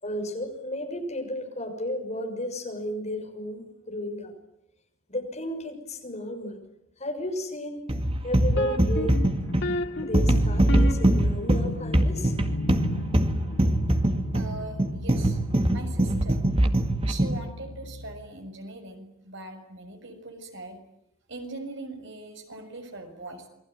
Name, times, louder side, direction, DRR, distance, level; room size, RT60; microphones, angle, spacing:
voice 1, 0.0-4.3 5.1-6.6 7.0-7.8 8.2-9.2 10.0-12.3 14.1-14.2, left 1 dB, 35° left, 4 dB, 6.1 m, -33 dB
sound 1, 7.9-17.5, right 1 dB, 25° right, 2.1 m, -23 dB
sound 2, 8.5-18.3, left 1 dB, 55° left, 2.4 m, -35 dB
voice 2, 14.3-15.4 15.7-16.4 17.1-20.8 21.3-23.5, right 2 dB, 60° right, 6 dB, 6.4 m, -41 dB
28.0 x 23.0 x 9.2 m, 0.80 s
head